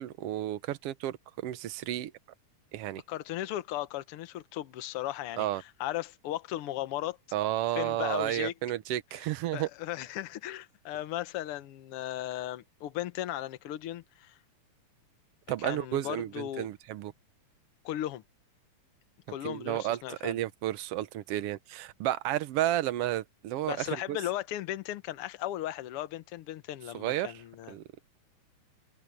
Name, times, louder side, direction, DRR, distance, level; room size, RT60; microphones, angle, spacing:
voice 1, 0.0-2.1 2.7-3.0 5.4-5.6 7.3-9.7 15.5-17.1 19.4-24.2 26.9-27.3 27.7-27.8, right 13 dB, 85° right, 1.3 m, -32 dB
voice 2, 3.1-7.2 7.7-8.5 9.5-14.4 15.6-16.7 17.8-18.2 19.3-20.4 23.6-27.7, left 13 dB, 65° left, 1.4 m, -36 dB
omnidirectional pair, 3.7 m